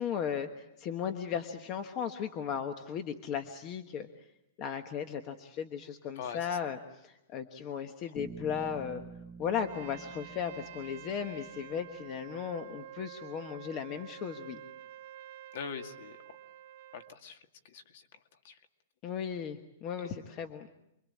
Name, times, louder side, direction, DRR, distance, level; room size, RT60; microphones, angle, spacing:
voice 1, 0.0-4.1 4.6-9.0 9.4-14.6 19.0-20.7, left 8 dB, 25° left, 8 dB, 1.3 m, -36 dB
voice 2, 6.2-6.6 15.5-16.2 16.9-17.4 17.6-18.1 18.4-18.6 20.0-20.1, left 6 dB, 45° left, 7 dB, 2.3 m, -42 dB
Bass guitar, 8.1-12.2, right 5 dB, ahead, 1.3 m, -49 dB
Trumpet, 9.5-17.2, right 13 dB, 40° right, 1.2 m, -49 dB
28.5 x 23.5 x 8.6 m, 0.84 s
hypercardioid pair, 175°, 0 cm